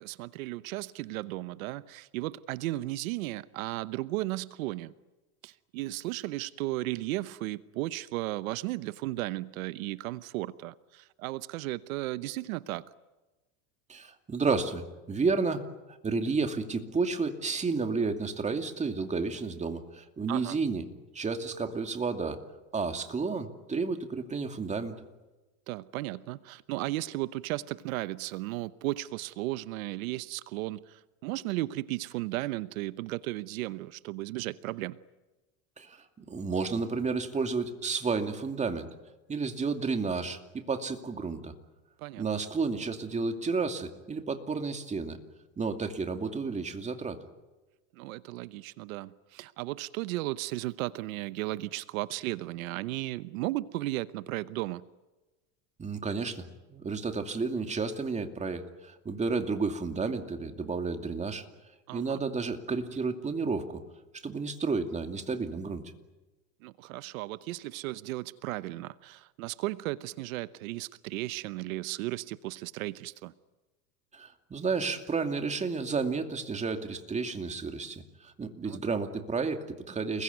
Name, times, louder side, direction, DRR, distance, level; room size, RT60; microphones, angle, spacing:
voice 1, 0.0-4.9 5.4-12.8 20.3-20.6 25.7-35.0 42.0-42.2 48.0-54.8 61.9-62.2 66.6-73.3 78.6-78.8, right 18 dB, 85° right, 1.0 m, -35 dB
voice 2, 13.9-15.6 16.0-20.8 21.1-22.4 22.7-24.9 35.8-38.9 39.3-41.5 42.2-45.2 45.6-47.2 55.8-61.4 61.9-63.8 64.2-65.8 74.1-80.2, right 4 dB, 15° right, 2.5 m, -31 dB
29.5 x 21.0 x 9.5 m
supercardioid pair, 135°, 41 cm